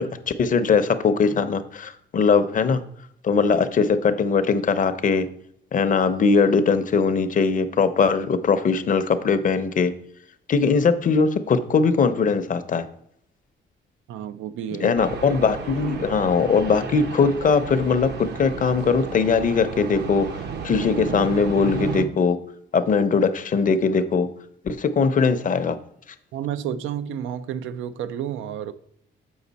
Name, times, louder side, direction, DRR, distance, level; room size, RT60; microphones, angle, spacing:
voice 1, 0.0-2.8 3.2-5.3 5.7-9.9 10.5-12.9 14.8-22.4 22.7-24.3 24.6-25.8, left 5 dB, 40° left, 0.6 m, -20 dB
voice 2, 14.1-14.9 26.3-28.7, right 9 dB, 85° right, 0.4 m, -30 dB
sound 1, 14.9-22.0, right 4 dB, 60° right, 0.8 m, -33 dB
7.2 x 5.0 x 4.0 m
cardioid pair, 90°, 20 cm